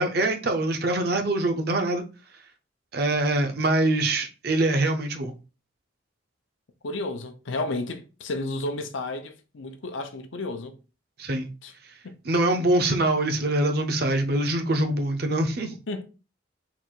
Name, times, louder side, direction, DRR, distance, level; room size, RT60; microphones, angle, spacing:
voice 1, 0.0-2.0 2.9-5.3 11.2-11.5 12.2-15.7, right 2 dB, 50° right, 0.6 m, -24 dB
voice 2, 6.8-10.8 11.6-11.7 12.0-12.1 15.9-16.0, left 2 dB, 75° left, 0.6 m, -32 dB
3.9 x 2.4 x 4.5 m
head